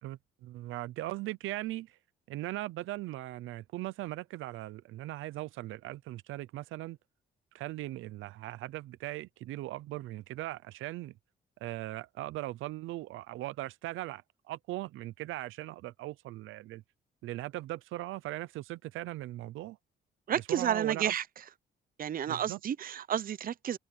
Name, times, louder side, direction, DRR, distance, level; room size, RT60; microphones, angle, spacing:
voice 1, 0.0-2.0 2.3-7.0 7.5-11.1 11.6-16.8 17.2-19.8 20.5-21.1 22.3-22.6, right 16 dB, 90° right, 0.7 m, -39 dB
voice 2, 20.3-21.2 22.0-23.8, right 9 dB, 45° right, 0.7 m, -31 dB
open air
cardioid pair, 90°, 20 cm